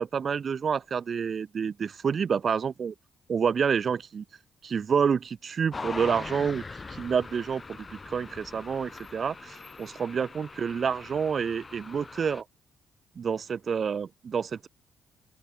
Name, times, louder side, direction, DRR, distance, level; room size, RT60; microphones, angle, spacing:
voice 1, 0.0-2.9 3.3-4.2 4.6-6.6 6.9-12.4 13.2-14.7, right 6 dB, 45° right, 0.5 m, -28 dB
sound 1, 5.7-12.4, left 4 dB, 30° left, 4.4 m, -42 dB
open air
cardioid pair, 90°, 0 cm